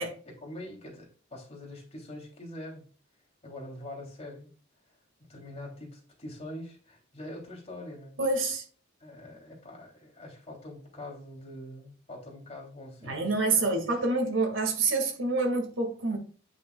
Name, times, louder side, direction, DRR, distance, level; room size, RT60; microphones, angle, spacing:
voice 1, 0.2-2.8 3.4-4.5 5.2-8.2 9.0-13.6, left 1 dB, 35° left, 3.2 m, -44 dB
voice 2, 8.2-8.6 13.0-16.2, right 3 dB, 75° right, 2.1 m, -27 dB
9.3 x 6.4 x 2.4 m
head